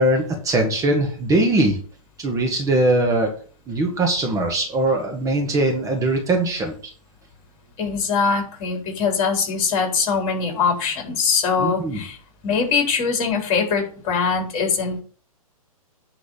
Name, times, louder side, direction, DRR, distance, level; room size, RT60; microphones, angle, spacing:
voice 1, 0.0-1.8 2.2-3.3 3.7-6.7 11.6-12.0, right 1 dB, 15° right, 3 dB, 1.9 m, -21 dB
voice 2, 7.8-12.2 12.4-15.0, left 5 dB, 35° left, 1 dB, 4.2 m, -22 dB
10.0 x 4.0 x 7.3 m, 0.42 s
hypercardioid pair, 125°, 19 cm